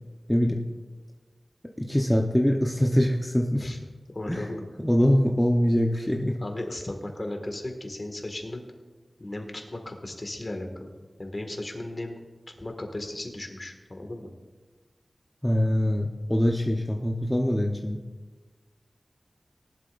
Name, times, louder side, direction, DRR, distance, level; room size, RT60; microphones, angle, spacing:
voice 1, 0.3-0.6 1.8-3.7 4.3-4.5 4.8-6.4 15.4-18.0, equal, 10° left, 0 dB, 0.9 m, -23 dB
voice 2, 4.1-4.6 6.4-8.6 9.2-10.9 11.2-12.2 12.6-14.3, left 1 dB, 40° left, 3 dB, 1.9 m, -36 dB
18.5 x 11.5 x 2.6 m, 1.4 s
wide cardioid pair, 65°, 0 cm